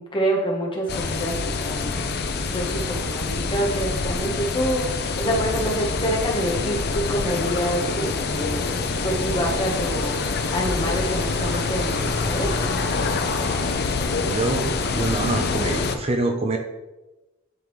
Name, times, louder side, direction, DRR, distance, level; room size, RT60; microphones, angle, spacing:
voice 1, 0.0-2.1 2.5-8.7 9.0-12.5, equal, 25° left, -1 dB, 1.2 m, -27 dB
sound 1, 0.9-16.0, left 4 dB, 50° left, 0.6 m, -26 dB
sound 2, 2.3-13.9, right 1 dB, 65° right, 1.0 m, -38 dB
sound 3, 8.9-15.3, right 4 dB, 85° right, 0.6 m, -41 dB
voice 2, 14.2-16.6, right 2 dB, 30° right, 4 dB, 0.5 m, -25 dB
10.5 x 3.8 x 3.1 m, 1.1 s
head